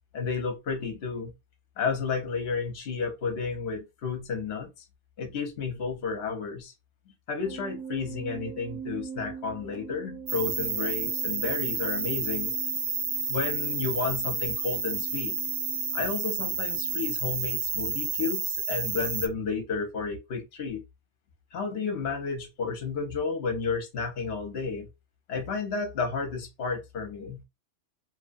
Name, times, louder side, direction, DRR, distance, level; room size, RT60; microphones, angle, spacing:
voice 1, 0.1-1.3 1.8-4.7 5.2-6.7 7.3-12.5 13.3-15.4 15.9-20.8 21.5-24.9 25.3-27.4, left 5 dB, 60° left, 0.9 m, -32 dB
sound 1, 7.4-17.1, right 6 dB, 90° right, 1.1 m, -44 dB
sound 2, 10.3-19.3, right 5 dB, 55° right, 0.6 m, -30 dB
2.8 x 2.1 x 2.5 m
omnidirectional pair, 1.2 m